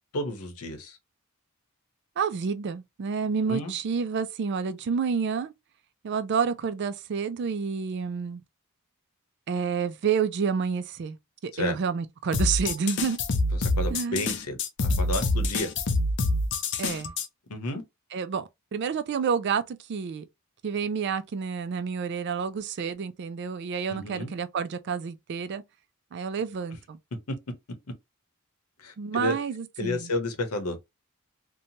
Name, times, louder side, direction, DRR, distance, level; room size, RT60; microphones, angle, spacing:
voice 1, 0.1-1.0 3.4-3.7 11.5-11.8 13.6-15.7 17.5-17.8 23.9-24.3 28.8-29.3 29.8-30.8, left 1 dB, 80° left, 0.8 m, -31 dB
voice 2, 2.2-5.5 6.0-8.4 9.5-11.2 11.4-13.2 13.9-14.3 16.8-17.1 18.1-20.2 20.6-25.6 26.1-27.0 29.0-30.1, right 6 dB, 50° right, 0.3 m, -29 dB
sound 1, 12.3-17.3, left 2 dB, 50° left, 0.4 m, -26 dB
2.7 x 2.2 x 2.8 m
head